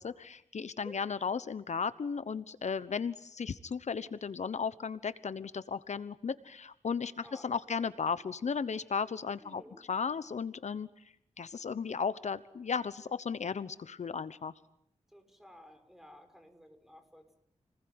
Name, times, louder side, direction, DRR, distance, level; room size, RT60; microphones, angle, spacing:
voice 1, 0.0-9.6 9.9-10.9 11.4-14.5, left 6 dB, 75° left, 14 dB, 1.1 m, -35 dB
voice 2, 7.2-7.9 9.4-9.8 15.1-17.3, equal, ahead, 7 dB, 6.2 m, -54 dB
30.0 x 20.5 x 9.8 m, 0.70 s
wide cardioid pair, 85°, 12 cm